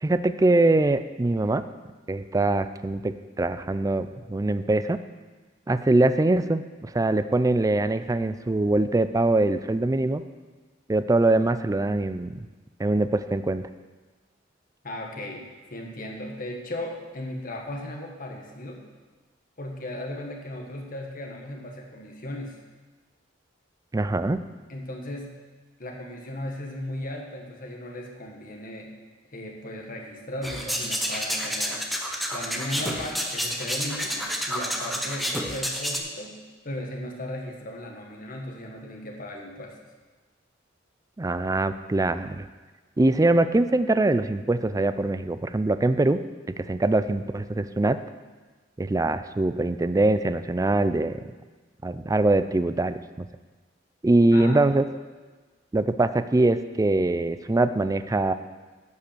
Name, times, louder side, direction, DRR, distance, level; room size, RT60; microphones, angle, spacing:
voice 1, 0.0-1.6 2.1-5.0 5.7-10.2 10.9-12.4 12.8-13.6 23.9-24.4 41.2-42.4 43.0-46.2 46.6-48.0 48.8-51.2 51.8-53.0 54.0-54.9 55.7-58.3, right 2 dB, 20° right, 11 dB, 0.4 m, -23 dB
voice 2, 14.8-18.8 19.6-22.6 24.7-25.4 25.8-28.9 29.3-31.9 32.3-36.4 36.6-39.8 54.3-54.6, left 1 dB, 45° left, 1 dB, 1.5 m, -36 dB
sound 1, 30.4-36.0, equal, ahead, 0.8 m, -29 dB
11.5 x 5.5 x 6.7 m, 1.3 s
head